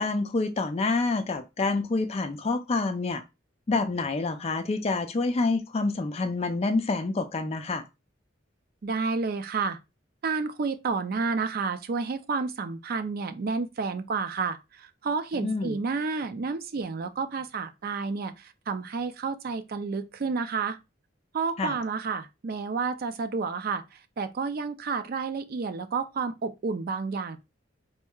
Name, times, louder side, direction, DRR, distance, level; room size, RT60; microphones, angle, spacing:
voice 1, 0.0-3.2 3.7-7.8 15.4-15.7 21.6-21.8, left 3 dB, 30° left, 0.4 m, -27 dB
voice 2, 8.8-9.8 10.2-20.8 21.3-27.4, right 4 dB, 50° right, 0.4 m, -30 dB
4.3 x 2.8 x 2.3 m
head